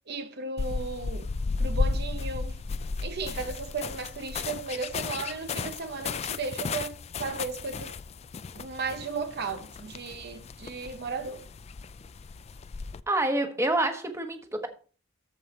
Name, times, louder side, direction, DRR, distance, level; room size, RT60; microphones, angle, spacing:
voice 1, 0.1-1.3 1.6-2.6 3.0-8.0 8.5-11.4, right 4 dB, 55° right, 0.7 m, -35 dB
sound 1, 0.6-13.0, left 4 dB, 35° left, 0.3 m, -34 dB
voice 2, 13.1-14.7, right 2 dB, 15° right, 1.1 m, -27 dB
14.0 x 4.9 x 4.0 m
head